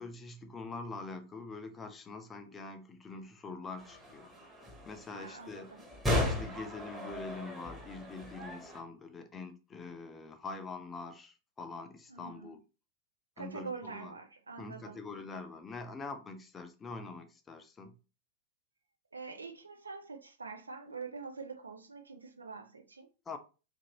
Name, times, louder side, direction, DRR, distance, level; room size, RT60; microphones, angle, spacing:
voice 1, 0.0-4.3 4.8-5.7 6.2-12.6 13.4-14.1 14.6-18.0 23.3-23.4, left 3 dB, 20° left, 0.5 m, -44 dB
sound 1, 3.8-8.8, left 1 dB, 10° right, 1.0 m, -36 dB
voice 2, 5.1-5.8 12.1-12.6 13.4-15.0 19.1-23.1, right 4 dB, 75° right, 0.4 m, -45 dB
2.8 x 2.6 x 2.9 m
figure-of-eight pair, 90°, 0 cm